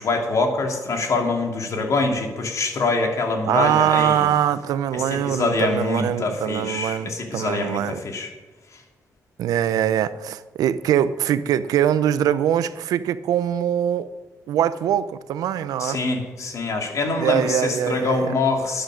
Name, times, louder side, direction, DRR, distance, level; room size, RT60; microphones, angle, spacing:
voice 1, 0.0-4.3 4.9-8.3 15.8-18.8, left 3 dB, 60° left, 2.8 m, -24 dB
voice 2, 3.5-8.0 9.4-14.1 14.5-16.0 17.2-18.3, right 10 dB, 85° right, 0.6 m, -22 dB
11.5 x 10.0 x 6.4 m
cardioid pair, 75°, 6 cm